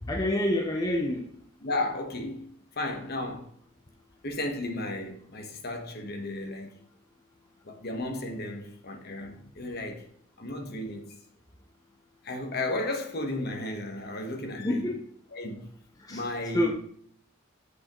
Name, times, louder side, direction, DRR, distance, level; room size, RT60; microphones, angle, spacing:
voice 1, 0.0-1.2 14.6-15.0 16.0-16.2 16.5-16.7, left 1 dB, 15° left, 0.5 m, -27 dB
voice 2, 1.6-2.5 2.8-3.5 4.2-6.7 7.6-10.1 10.4-11.0 12.2-14.9 15.3-15.6 16.1-16.7, left 2 dB, 45° left, 1.1 m, -34 dB
7.7 x 6.4 x 3.0 m
head